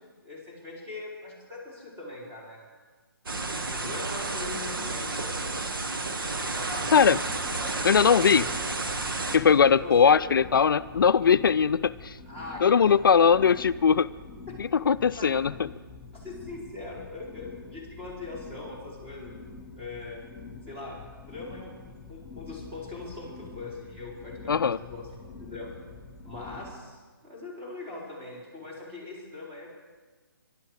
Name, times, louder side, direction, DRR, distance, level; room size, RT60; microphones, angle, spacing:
voice 1, 0.0-2.7 3.5-5.5 6.4-7.0 7.6-8.4 9.5-10.3 12.3-13.6 14.5-14.6 15.2-15.3 16.1-19.4 19.8-20.2 20.7-25.1 25.4-25.8 26.2-29.7, left 2 dB, 20° right, -2 dB, 4.4 m, -41 dB
sound 1, 3.3-9.4, right 3 dB, 70° right, 1.6 m, -31 dB
sound 2, 6.8-26.8, left 4 dB, 10° left, 2.2 m, -46 dB
voice 2, 7.8-8.5 9.3-12.2 12.6-14.1 14.6-15.7 24.5-24.8, left 6 dB, 65° left, 14 dB, 0.4 m, -20 dB
24.0 x 12.0 x 4.9 m, 1.4 s
figure-of-eight pair, 150°, 12 cm